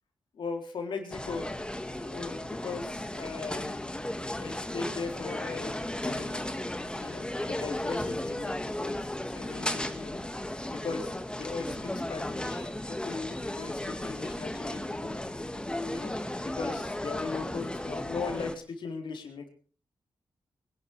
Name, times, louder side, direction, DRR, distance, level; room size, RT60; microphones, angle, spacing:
voice 1, 0.3-1.5 2.0-4.0 4.4-5.8 6.0-6.5 7.0-10.2 10.7-15.2 15.9-16.1 16.4-19.5, left 4 dB, 75° left, 3 dB, 3.9 m, -38 dB
sound 1, 1.1-18.6, left 1 dB, 10° left, 1.7 m, -35 dB
23.5 x 11.5 x 4.6 m, 0.42 s
cardioid pair, 65°, 8 cm